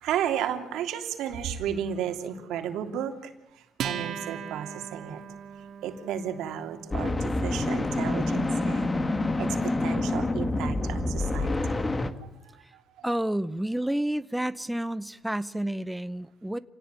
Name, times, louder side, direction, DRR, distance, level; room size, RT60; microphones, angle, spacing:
voice 1, 0.0-5.2 5.8-9.0 9.4-11.6 12.5-13.1, right 9 dB, 90° right, 3.2 m, -33 dB
Acoustic guitar, 3.8-10.6, right 8 dB, 70° right, 2.3 m, -41 dB
sound 1, 6.9-12.1, left 2 dB, 20° left, 2.0 m, -27 dB
voice 2, 13.0-16.6, right 1 dB, 5° right, 0.8 m, -30 dB
29.0 x 17.5 x 9.9 m
cardioid pair, 115°, 0 cm